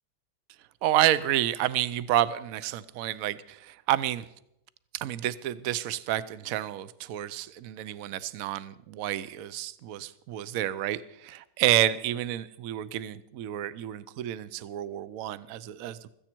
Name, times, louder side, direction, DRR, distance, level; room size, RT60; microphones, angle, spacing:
voice 1, 0.8-4.3 4.9-16.1, right 13 dB, 70° right, 16 dB, 0.8 m, -29 dB
16.0 x 14.0 x 4.5 m, 0.81 s
omnidirectional pair, 2.0 m